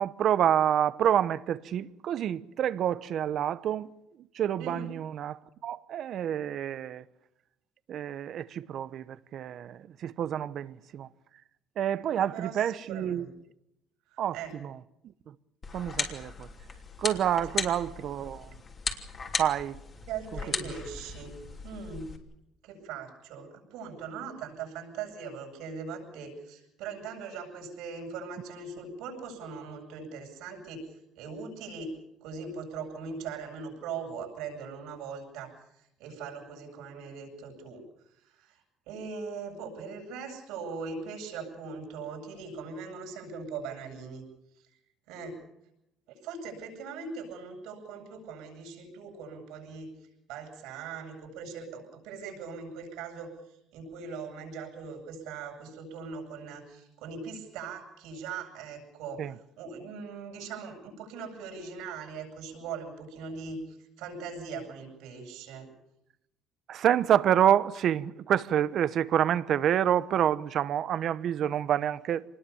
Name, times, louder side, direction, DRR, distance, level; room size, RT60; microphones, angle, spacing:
voice 1, 0.0-3.9 4.3-7.0 7.9-11.1 11.8-13.3 14.2-14.4 14.6-14.7 15.3-15.4 15.7-16.5 17.0-18.5 19.4-19.8 59.2-59.3 66.7-72.2, right 10 dB, 55° right, 0.9 m, -28 dB
voice 2, 4.6-4.9 12.2-13.3 14.1-14.6 17.5-17.6 20.1-22.2 22.6-31.9 32.2-37.8 38.1-44.2 44.5-44.7 45.1-45.4 46.1-65.7, right 5 dB, 85° right, 7.9 m, -40 dB
sound 1, 15.6-22.2, left 4 dB, 35° left, 3.0 m, -37 dB
25.5 x 20.0 x 7.1 m
cardioid pair, 115°, 0 cm